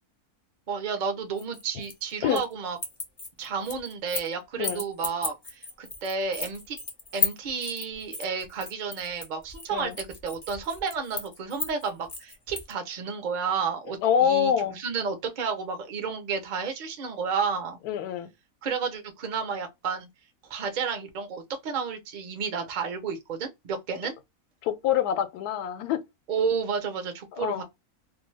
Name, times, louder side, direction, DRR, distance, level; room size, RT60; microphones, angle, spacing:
voice 1, 0.7-2.8 3.4-6.8 7.1-17.8 18.6-20.1 20.5-24.1 26.3-27.6, right 5 dB, 45° right, 0.6 m, -31 dB
sound 1, 1.4-2.5 2.8-4.3 4.6-12.7, left 4 dB, 30° left, 0.4 m, -34 dB
voice 2, 14.0-14.8 17.9-18.3 24.6-26.0 27.4-27.6, left 9 dB, 90° left, 1.1 m, -25 dB
2.6 x 2.2 x 3.1 m
omnidirectional pair, 1.6 m